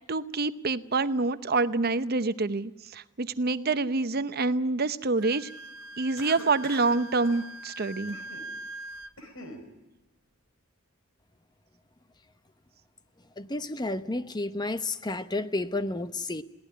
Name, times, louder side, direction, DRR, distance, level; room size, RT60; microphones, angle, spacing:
voice 1, 0.1-5.5 6.0-8.2, right 3 dB, 45° right, 13 dB, 0.8 m, -27 dB
Wind instrument woodwind instrument, 5.2-9.1, right 1 dB, 70° right, 1.1 m, -42 dB
Cough, 6.2-7.0 7.2-7.4 8.1-8.5 8.9-9.6, left 1 dB, 70° left, 4.7 m, -44 dB
voice 2, 13.4-16.4, left 2 dB, 20° left, 12 dB, 0.8 m, -31 dB
22.0 x 17.5 x 9.9 m, 1.0 s
head